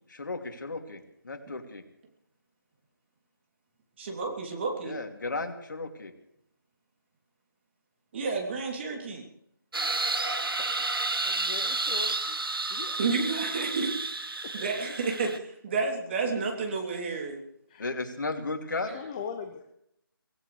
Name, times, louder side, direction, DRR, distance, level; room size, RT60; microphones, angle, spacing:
voice 1, 0.1-1.8 4.8-6.1 10.6-10.7 17.8-19.0, left 3 dB, 55° left, 4 dB, 2.8 m, -35 dB
voice 2, 4.0-5.0 8.1-9.2 13.0-17.4, right 4 dB, 30° right, 1 dB, 3.2 m, -31 dB
sound 1, 9.7-15.4, right 3 dB, 75° right, 1.7 m, -31 dB
voice 3, 11.2-12.4 12.7-13.0 14.4-14.7 17.7-18.0 18.9-19.7, left 6 dB, 20° left, 6 dB, 1.0 m, -40 dB
24.5 x 17.0 x 3.4 m, 0.76 s
figure-of-eight pair, 160°, 12 cm